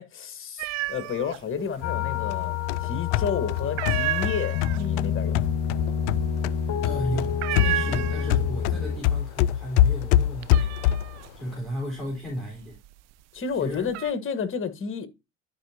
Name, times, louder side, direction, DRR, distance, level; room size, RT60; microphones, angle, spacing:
voice 1, 0.0-5.5 13.3-15.1, left 6 dB, 35° left, 1.5 m, -31 dB
sound 1, 0.6-1.4 1.7-2.5 2.8-3.2 3.6-8.7 9.0-9.5 9.9-13.0 13.5-14.1, right 16 dB, 45° right, 0.5 m, -32 dB
sound 2, 1.8-9.0, left 8 dB, 50° left, 1.4 m, -28 dB
sound 3, 2.3-6.6 6.8-11.2, left 12 dB, 65° left, 0.5 m, -24 dB
voice 2, 6.8-11.0 11.3-12.8 13.5-13.9, equal, ahead, 3.8 m, -34 dB
12.0 x 5.0 x 2.8 m
hypercardioid pair, 70°, 37 cm